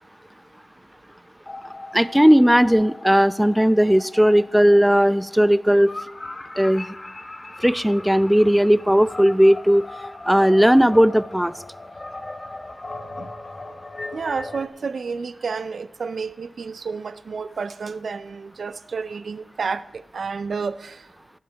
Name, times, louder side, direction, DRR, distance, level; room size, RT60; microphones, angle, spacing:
sound 1, 1.5-14.7, left 2 dB, 35° left, 1.0 m, -38 dB
voice 1, 1.9-5.9 6.6-6.9 7.6-9.8 10.3-11.5, equal, 5° right, 0.3 m, -16 dB
voice 2, 14.1-21.1, right 5 dB, 80° right, 0.4 m, -30 dB
17.0 x 10.5 x 3.4 m
wide cardioid pair, 95°, 0 cm